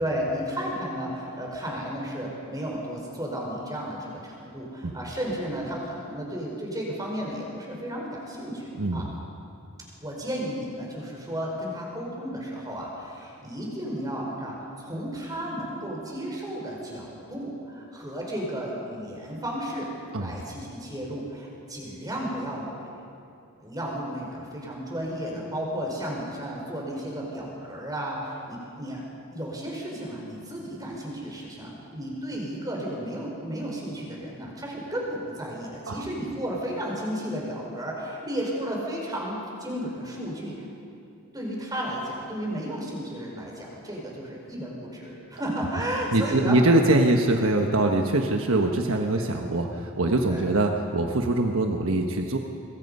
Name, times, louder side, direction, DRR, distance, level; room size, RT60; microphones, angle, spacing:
voice 1, 0.0-9.1 10.0-23.0 23.6-29.0 29.3-40.7 41.3-46.6 49.1-49.2 50.3-50.4, equal, 15° right, -2 dB, 4.9 m, -33 dB
voice 2, 8.8-9.1 20.1-20.3 35.9-36.1 46.1-52.4, right 2 dB, 65° right, 3 dB, 1.3 m, -23 dB
25.5 x 22.5 x 5.5 m, 2.6 s
head